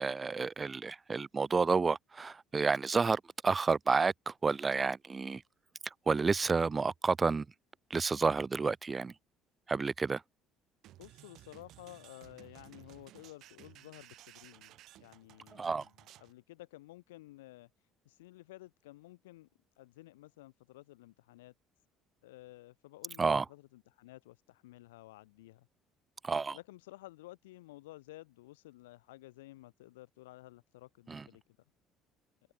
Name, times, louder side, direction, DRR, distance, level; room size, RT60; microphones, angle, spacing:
voice 1, 0.0-5.4 6.1-7.5 7.9-9.1 9.7-10.2 15.5-15.8 23.2-23.4 26.2-26.6 31.1-31.2, right 4 dB, 30° right, 0.3 m, -30 dB
sound 1, 10.8-16.3, right 14 dB, 60° right, 3.9 m, -57 dB
voice 2, 11.0-17.7 18.0-19.5 19.8-21.5 22.2-25.7 26.5-31.4, left 18 dB, 80° left, 1.1 m, -53 dB
hypercardioid pair, 55°, 0 cm